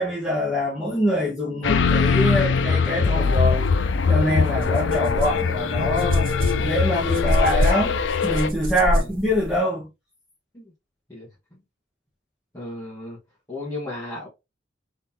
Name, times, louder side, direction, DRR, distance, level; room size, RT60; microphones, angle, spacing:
voice 1, 0.0-3.7 4.1-6.3 6.6-9.9, left 1 dB, ahead, 1.2 m, -24 dB
sound 1, 1.6-8.5, left 5 dB, 75° left, 0.5 m, -22 dB
sound 2, 4.0-4.1 4.5-9.6, equal, 50° right, 0.8 m, -27 dB
voice 2, 12.5-13.2 13.5-14.3, left 2 dB, 20° left, 1.4 m, -34 dB
3.9 x 3.2 x 2.7 m
head